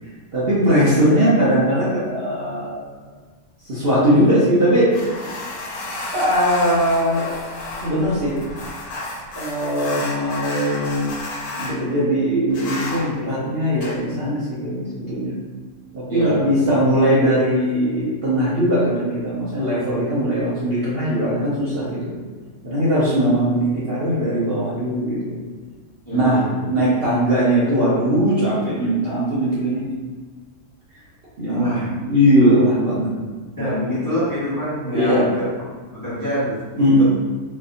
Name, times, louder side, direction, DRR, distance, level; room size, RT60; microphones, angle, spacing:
voice 1, 0.3-2.9 3.6-4.9 6.1-7.3 7.8-8.4 9.3-11.2 11.6-15.4 15.9-22.1 22.6-25.4 26.1-29.8 31.4-33.1 33.6-34.0 34.9-35.2 36.8-37.0, equal, 45° right, -9 dB, 0.9 m, -20 dB
sound 1, 4.9-11.8 12.5-13.1 13.8-14.0, left 2 dB, 80° left, 1.2 m, -32 dB
voice 2, 16.1-16.6 26.1-26.6 31.5-31.9 33.6-35.5 35.9-37.0, equal, 15° left, -11 dB, 1.0 m, -26 dB
4.1 x 2.7 x 2.6 m, 1.4 s
omnidirectional pair, 1.6 m